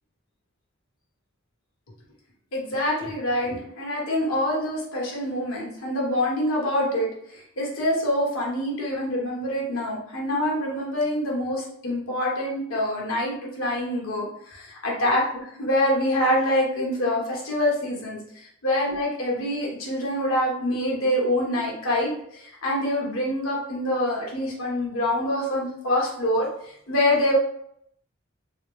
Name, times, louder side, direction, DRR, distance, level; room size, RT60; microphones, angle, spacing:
voice 1, 2.5-15.2 15.6-27.3, left 1 dB, 85° left, -3 dB, 1.2 m, -25 dB
3.9 x 2.0 x 3.1 m, 0.70 s
head